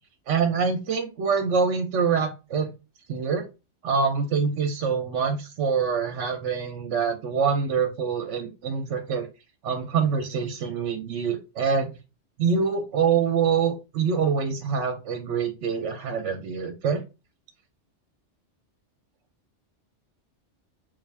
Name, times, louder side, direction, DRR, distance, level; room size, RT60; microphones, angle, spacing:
voice 1, 0.3-2.7 3.1-3.4 3.8-9.3 9.6-11.9 12.4-17.0, right 6 dB, 75° right, 5 dB, 0.9 m, -25 dB
3.6 x 2.4 x 3.2 m, 0.28 s
omnidirectional pair, 1.2 m